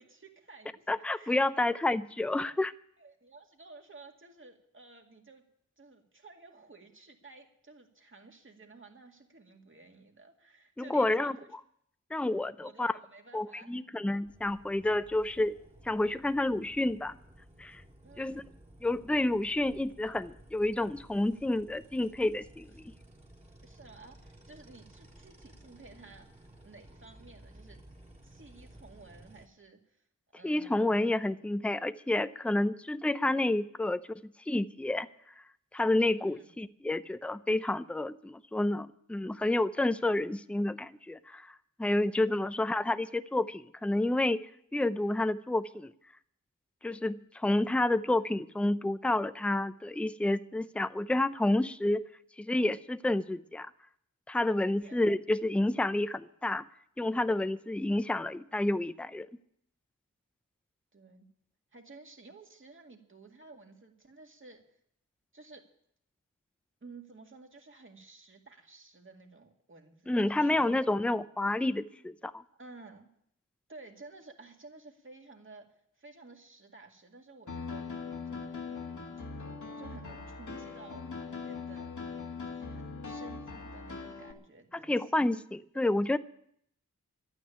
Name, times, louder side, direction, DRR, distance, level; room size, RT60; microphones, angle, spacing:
voice 1, 0.0-1.4 3.0-5.4 5.8-11.5 12.6-13.8 18.0-18.4 23.6-26.3 26.6-27.8 28.2-30.0 30.3-31.0 36.2-36.5 54.8-55.0 60.9-61.3 61.7-64.8 65.3-65.6 66.8-70.1 70.4-70.8 72.5-73.1 73.7-77.9 78.2-79.1 79.8-81.0 81.4-81.9 82.5-85.2, right 3 dB, 40° right, 3 dB, 2.1 m, -53 dB
voice 2, 0.9-2.7 10.8-11.4 12.1-12.9 13.3-15.6 15.8-17.1 17.6-17.8 18.2-18.4 18.8-22.8 30.4-34.0 34.5-35.1 35.7-41.5 41.8-44.4 44.7-45.9 46.8-52.0 52.4-53.7 54.3-56.6 57.0-59.3 70.1-72.4 84.7-86.2, left 2 dB, 5° left, 13 dB, 0.5 m, -29 dB
sound 1, 14.2-29.5, right 1 dB, 20° right, 2.1 m, -55 dB
Piano, 77.5-84.3, left 4 dB, 65° left, 1.7 m, -41 dB
12.0 x 9.4 x 10.0 m, 0.71 s
wide cardioid pair, 80°, 32 cm